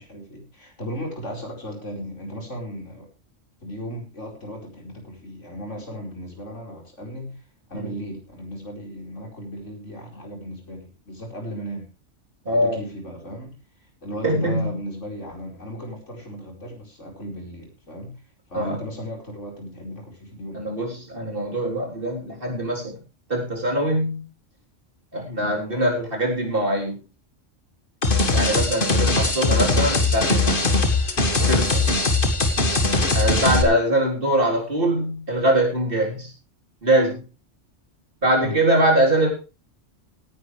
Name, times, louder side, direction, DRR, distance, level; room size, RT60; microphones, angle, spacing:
voice 1, 0.0-3.1 3.6-7.4 7.7-11.9 12.5-13.6 14.0-18.2 18.5-20.6 25.4-25.6 28.9-29.4 32.8-33.0 38.4-38.6, equal, 80° left, 1 dB, 5.2 m, -36 dB
voice 2, 12.5-12.8 14.2-14.7 18.5-18.8 20.5-23.0 23.3-24.2 25.1-27.0 28.3-30.6 31.5-31.9 33.1-36.3 36.8-37.2 38.2-39.3, right 1 dB, 50° right, 0 dB, 4.1 m, -22 dB
sound 1, 28.0-33.6, left 3 dB, 45° left, 1.9 m, -20 dB
17.5 x 11.0 x 3.3 m, 0.31 s
omnidirectional pair, 1.2 m